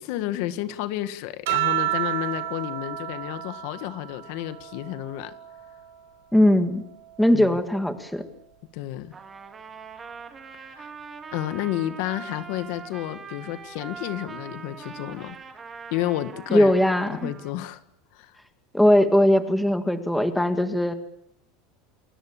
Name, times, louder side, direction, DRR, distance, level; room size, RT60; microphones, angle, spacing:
voice 1, 0.0-5.3 7.3-7.6 8.7-9.1 10.5-10.9 11.3-15.3 15.9-16.7 17.1-17.8 18.1-18.4, left 14 dB, 60° left, 12 dB, 1.6 m, -31 dB
sound 1, 1.5-6.3 6.7-8.5 9.6-10.2, right 13 dB, 75° right, 4.8 m, -32 dB
voice 2, 6.3-6.8 7.2-8.2 16.5-17.3 18.7-20.9, left 1 dB, ahead, 8 dB, 1.8 m, -20 dB
Trumpet, 9.1-17.5, right 5 dB, 15° right, 2.8 m, -42 dB
30.0 x 21.0 x 7.2 m, 0.72 s
supercardioid pair, 165°, 0 cm